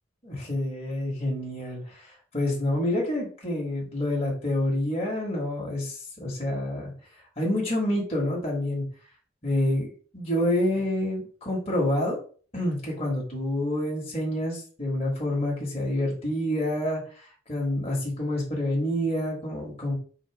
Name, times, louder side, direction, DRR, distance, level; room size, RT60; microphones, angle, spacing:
voice 1, 0.2-6.9 7.4-8.8 9.4-12.2 12.5-19.9, left 1 dB, 35° left, -4 dB, 1.4 m, -28 dB
4.0 x 2.6 x 4.8 m, 0.42 s
head